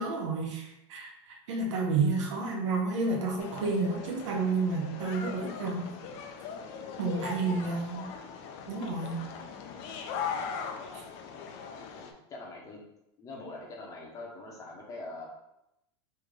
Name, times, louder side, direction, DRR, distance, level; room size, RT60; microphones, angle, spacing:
voice 1, 0.0-5.9 7.0-8.1 8.7-9.2, right 3 dB, 75° right, 0 dB, 1.1 m, -30 dB
sound 1, 3.4-12.1, left 6 dB, 40° left, 0.5 m, -40 dB
voice 2, 7.2-7.8 11.9-12.8 13.2-15.3, left 2 dB, 20° left, -1 dB, 0.8 m, -44 dB
3.2 x 3.1 x 3.7 m, 0.86 s
supercardioid pair, 155°, 15 cm